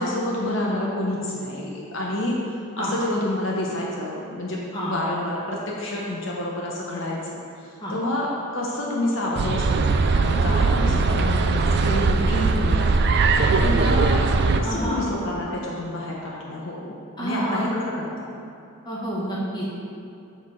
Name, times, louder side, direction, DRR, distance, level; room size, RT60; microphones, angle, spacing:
voice 1, 0.0-2.4 2.8-13.1 13.6-14.2 14.6-16.9 17.2-18.3, left 1 dB, 60° left, -3 dB, 0.8 m, -28 dB
sound 1, 9.3-14.6, right 4 dB, 50° right, 0.3 m, -20 dB
voice 2, 14.6-15.0 17.2-17.6 18.8-19.6, equal, 20° left, -7 dB, 1.4 m, -28 dB
7.8 x 4.1 x 4.9 m, 2.6 s
head